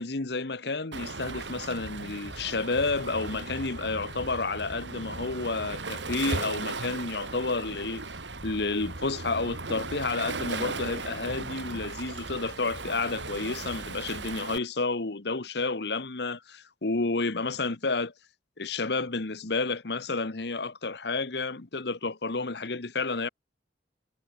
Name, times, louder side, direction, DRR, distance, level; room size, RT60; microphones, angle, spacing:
voice 1, 0.0-8.1 8.4-18.1 18.6-23.3, left 3 dB, 65° left, 1.3 m, -30 dB
Waves surf, 0.9-14.6, right 3 dB, 90° right, 3.1 m, -37 dB
head